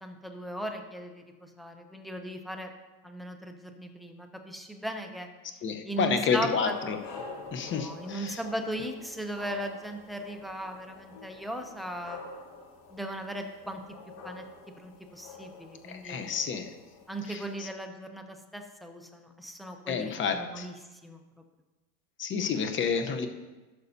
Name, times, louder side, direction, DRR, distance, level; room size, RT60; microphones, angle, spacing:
voice 1, 0.0-2.7 3.0-5.3 5.8-6.7 7.5-12.2 12.9-13.8 14.2-14.4 14.8-16.3 17.1-20.7 21.0-21.2, right 1 dB, ahead, 4 dB, 0.4 m, -37 dB
voice 2, 5.6-7.0 7.5-8.4 15.8-16.7 17.3-17.7 19.9-20.7 22.2-23.3, left 6 dB, 25° left, 6 dB, 0.9 m, -30 dB
sound 1, 6.6-17.7, left 4 dB, 55° left, 2.3 m, -47 dB
16.0 x 6.4 x 2.7 m, 1.2 s
supercardioid pair, 120°, 50 cm